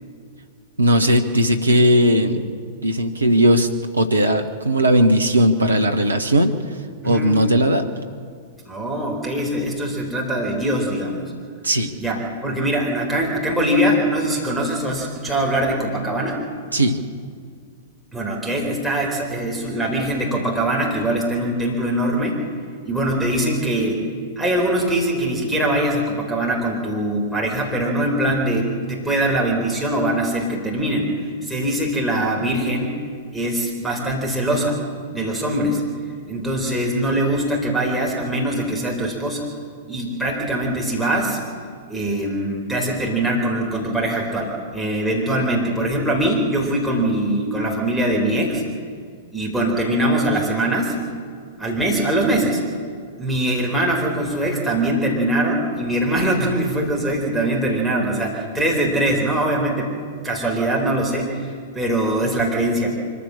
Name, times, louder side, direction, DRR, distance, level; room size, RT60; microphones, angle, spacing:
voice 1, 0.8-2.4 2.8-3.7 4.0-6.5 7.0-7.9 11.6-11.9 16.7-17.0, equal, 80° right, 5 dB, 1.3 m, -17 dB
voice 2, 7.0-7.4 8.7-11.2 12.0-16.4 18.1-22.4 22.9-24.0 24.4-33.0 33.3-34.8 35.1-35.8 36.3-39.4 39.9-41.4 41.9-48.6 49.3-50.9 51.6-52.6 53.2-59.9 60.2-62.9, right 1 dB, ahead, -3 dB, 4.2 m, -22 dB
24.5 x 15.5 x 7.6 m, 2.1 s
figure-of-eight pair, 100°, 0 cm